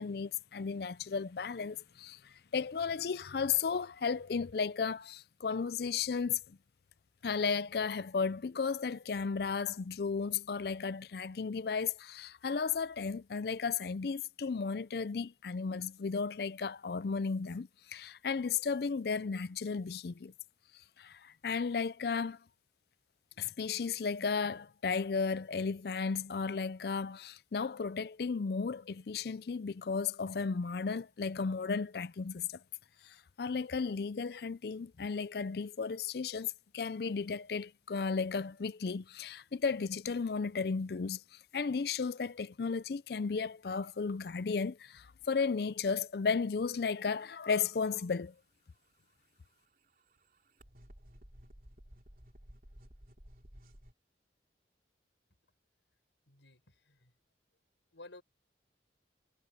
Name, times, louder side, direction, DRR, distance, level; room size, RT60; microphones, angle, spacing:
voice 1, 0.0-6.6 7.2-20.3 21.0-22.4 23.4-32.5 33.0-48.3, left 5 dB, 55° left, 0.4 m, -34 dB
sound 1, 48.8-53.9, equal, 50° right, 3.4 m, -56 dB
voice 2, 56.3-57.1 57.9-58.2, left 2 dB, 85° left, 5.4 m, -54 dB
head